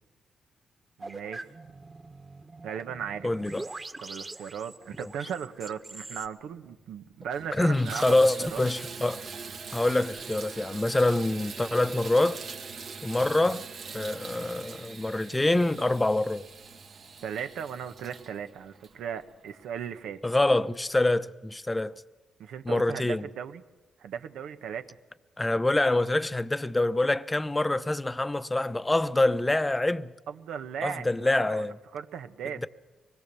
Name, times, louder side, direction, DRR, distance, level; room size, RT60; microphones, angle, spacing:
sound 1, 1.0-6.3, right 2 dB, 25° right, 1.6 m, -43 dB
voice 1, 1.0-1.5 2.6-3.6 4.0-8.2 8.5-8.7 17.2-20.2 22.4-23.6 24.0-24.9 30.3-31.7 31.9-32.6, right 8 dB, 85° right, 1.2 m, -37 dB
voice 2, 3.2-3.6 7.5-9.2 9.7-12.4 13.0-13.6 13.9-16.4 20.2-22.0 22.6-23.3 25.4-30.1 30.8-31.8, left 2 dB, 15° left, 0.8 m, -25 dB
Water tap faucet / Bathtub (filling or washing), 6.6-6.7 7.2-19.6 20.3-20.4 20.9-21.0, right 5 dB, 60° right, 2.1 m, -43 dB
24.5 x 20.5 x 7.0 m
cardioid pair, 90°, 0 cm